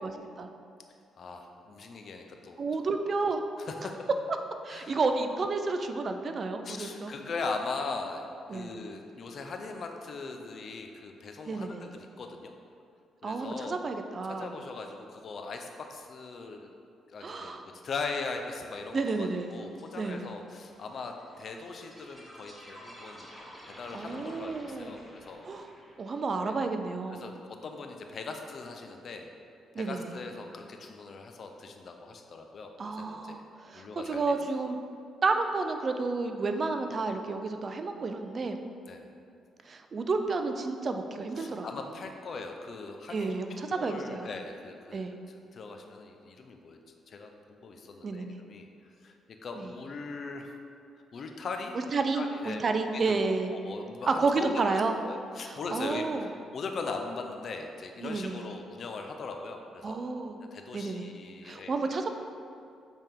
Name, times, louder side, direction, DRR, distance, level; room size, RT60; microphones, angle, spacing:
voice 1, 0.0-0.5 2.6-3.4 4.6-7.2 8.5-8.8 11.5-11.8 13.2-14.5 17.2-17.7 18.9-19.5 20.0-20.2 23.9-25.0 25.5-25.7 26.0-27.3 29.7-30.1 32.8-34.8 35.2-38.6 39.7-41.7 43.1-44.3 44.9-45.1 48.0-48.4 49.6-49.7 51.9-53.5 54.1-55.0 55.4-56.3 58.0-58.4 59.8-60.4 60.7-61.1 61.4-62.1, right 3 dB, 40° right, 6 dB, 0.4 m, -31 dB
voice 2, 1.2-2.6 3.6-4.0 4.7-5.0 6.6-8.3 8.5-12.5 13.2-13.8 14.2-16.7 17.1-23.3 23.7-25.6 26.4-26.6 27.1-29.3 29.8-33.4 33.7-34.4 38.9-39.0 41.4-45.1 45.5-46.8 47.1-48.7 49.0-49.1 49.4-50.6 51.1-51.8 52.1-52.6 52.9-53.2 53.5-60.0 60.5-61.8, left 4 dB, 50° left, 4 dB, 0.6 m, -40 dB
sound 1, 18.8-26.0, equal, ahead, 1.1 m, -51 dB
8.2 x 3.5 x 3.6 m, 2.4 s
cardioid pair, 90°, 0 cm